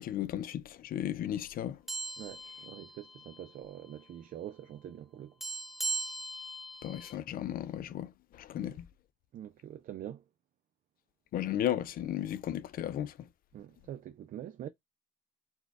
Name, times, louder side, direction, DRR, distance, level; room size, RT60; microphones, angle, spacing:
voice 1, 0.0-1.8 6.8-8.9 11.3-13.1, left 11 dB, 60° left, 0.6 m, -35 dB
sound 1, 1.9-3.5 3.8-4.0 5.4-7.1, right 3 dB, ahead, 0.9 m, -39 dB
voice 2, 2.2-5.3 8.6-8.8 9.3-10.2 13.5-14.7, right 11 dB, 55° right, 0.5 m, -45 dB
4.3 x 2.3 x 4.6 m
cardioid pair, 110°, 17 cm